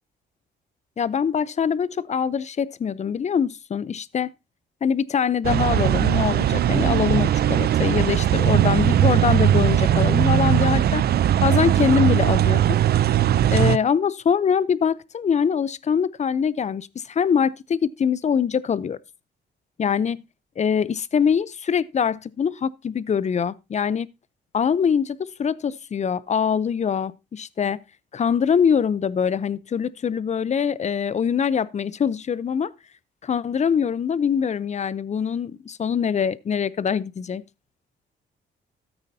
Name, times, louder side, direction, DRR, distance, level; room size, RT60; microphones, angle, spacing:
voice 1, 1.0-4.3 4.8-11.0 11.4-12.8 13.5-19.0 19.8-20.2 20.6-24.1 24.5-27.8 28.1-32.7 33.2-37.4, left 7 dB, 35° left, 0.6 m, -23 dB
sound 1, 5.4-13.8, right 11 dB, 55° right, 0.4 m, -19 dB
13.5 x 8.8 x 2.7 m
cardioid pair, 90°, 20 cm